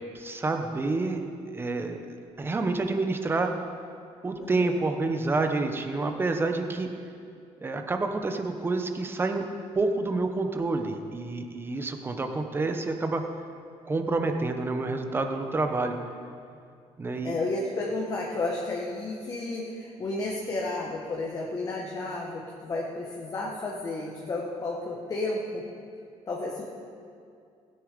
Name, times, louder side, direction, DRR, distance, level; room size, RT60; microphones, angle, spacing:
voice 1, 0.1-1.2 1.5-3.5 4.2-6.9 7.6-9.4 9.7-13.2 13.9-15.9 17.0-17.4, right 3 dB, 20° right, 5 dB, 1.0 m, -28 dB
voice 2, 4.4-4.8 17.2-25.6 26.3-26.6, left 2 dB, 30° left, -2 dB, 1.4 m, -32 dB
17.0 x 9.0 x 5.2 m, 2.3 s
cardioid pair, 150°, 12 cm